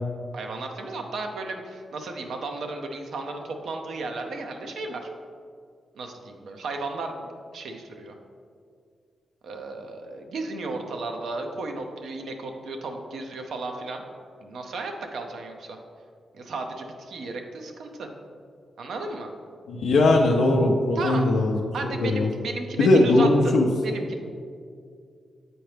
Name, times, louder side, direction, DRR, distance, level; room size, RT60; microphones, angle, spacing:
voice 1, 0.3-5.1 5.9-8.2 9.4-14.0 14.4-15.8 16.3-18.1 18.8-19.3 21.0-21.3 21.7-24.2, right 3 dB, 80° right, 4 dB, 0.6 m, -34 dB
voice 2, 19.7-21.6 21.9-22.3 22.8-23.7, left 2 dB, 85° left, -1 dB, 0.5 m, -19 dB
7.7 x 4.3 x 3.3 m, 2.3 s
cardioid pair, 55°, 0 cm